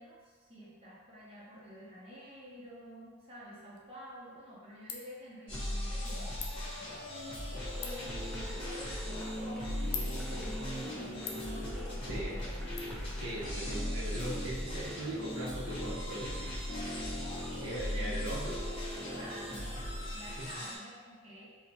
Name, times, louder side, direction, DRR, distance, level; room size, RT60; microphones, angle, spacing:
voice 1, 0.0-12.8 13.6-13.8 17.5-18.2 19.2-19.8 20.1-21.6, equal, 25° right, -7 dB, 0.7 m, -50 dB
Ratchet pawl, 3.7-12.8, left 7 dB, 85° left, 0.4 m, -48 dB
sound 1, 5.5-20.8, left 1 dB, 25° left, 0.7 m, -38 dB
Water tap faucet / Sink (filling or washing), 7.6-14.1, equal, ahead, 0.3 m, -55 dB
voice 2, 13.2-16.6 17.6-18.7 19.1-19.2 20.4-20.6, right 1 dB, 85° right, -5 dB, 0.8 m, -40 dB
4.3 x 2.2 x 2.6 m, 1.5 s
head